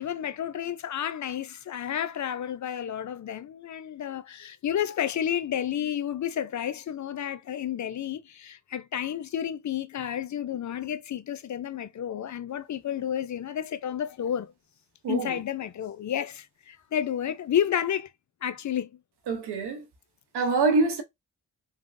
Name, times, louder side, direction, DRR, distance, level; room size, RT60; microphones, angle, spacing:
voice 1, 0.0-14.5 15.1-18.1 18.4-18.9, left 9 dB, 50° left, 0.5 m, -31 dB
voice 2, 15.0-15.4 19.3-19.9 20.3-21.0, right 3 dB, 85° right, 0.9 m, -25 dB
3.4 x 2.1 x 2.6 m
cardioid pair, 60°, 38 cm